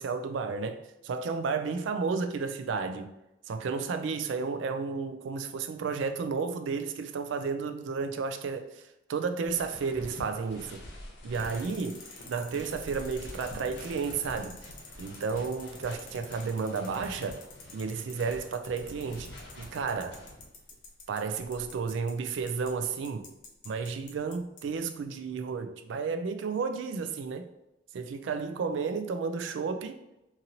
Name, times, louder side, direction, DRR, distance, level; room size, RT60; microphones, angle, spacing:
voice 1, 0.0-3.1 3.5-8.8 9.1-10.8 11.2-14.6 15.0-17.4 17.7-19.3 19.6-20.2 21.1-23.3 23.7-27.5 27.9-30.0, right 5 dB, 75° right, 0.3 m, -32 dB
sound 1, 9.4-20.7 21.3-22.8, left 1 dB, 85° left, 0.8 m, -46 dB
sound 2, 11.3-24.6 24.9-25.0, left 5 dB, 40° left, 0.5 m, -49 dB
2.9 x 2.6 x 2.7 m
head